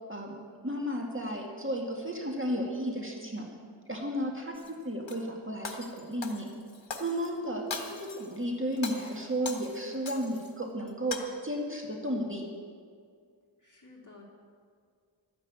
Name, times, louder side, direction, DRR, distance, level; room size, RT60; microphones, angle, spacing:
voice 1, 0.6-3.5 3.9-4.5 4.8-6.5 7.0-12.5, equal, 25° right, 0 dB, 2.0 m, -33 dB
Shatter, 4.5-5.2 5.6-7.3 7.7-8.4 8.7-10.5 10.9-11.2, left 4 dB, 65° left, 1.5 m, -40 dB
voice 2, 13.6-14.2, left 3 dB, 40° left, -3 dB, 3.4 m, -54 dB
12.5 x 10.5 x 8.7 m, 2.1 s
wide cardioid pair, 60°, 48 cm